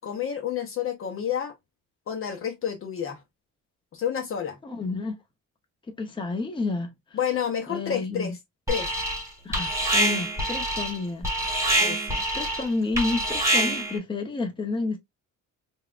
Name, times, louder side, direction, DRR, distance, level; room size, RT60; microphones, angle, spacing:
voice 1, 0.0-1.5 2.1-3.2 3.9-4.6 7.1-8.4 8.7-9.0 11.8-12.2, left 8 dB, 40° left, 0.7 m, -30 dB
voice 2, 4.6-5.1 6.0-6.9 7.7-8.3 9.4-11.6 12.3-15.0, left 3 dB, 15° left, 0.8 m, -30 dB
Alarm, 8.7-9.3 9.5-14.0, right 1 dB, 10° right, 1.2 m, -26 dB
5.5 x 2.3 x 2.4 m
cardioid pair, 165°, 33 cm